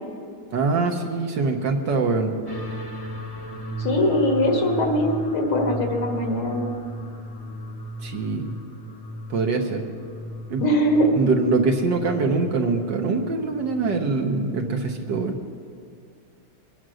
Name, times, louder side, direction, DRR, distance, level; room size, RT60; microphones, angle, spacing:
voice 1, 0.5-2.4 8.0-8.5 9.3-9.8 10.5-10.6 11.1-15.4, right 3 dB, 60° right, 3 dB, 1.6 m, -23 dB
sound 1, 2.5-15.1, equal, 15° left, 1.2 m, -36 dB
voice 2, 3.8-6.8 10.6-11.1, equal, 70° left, 2 dB, 2.6 m, -21 dB
23.0 x 9.3 x 6.3 m, 2.3 s
omnidirectional pair, 2.4 m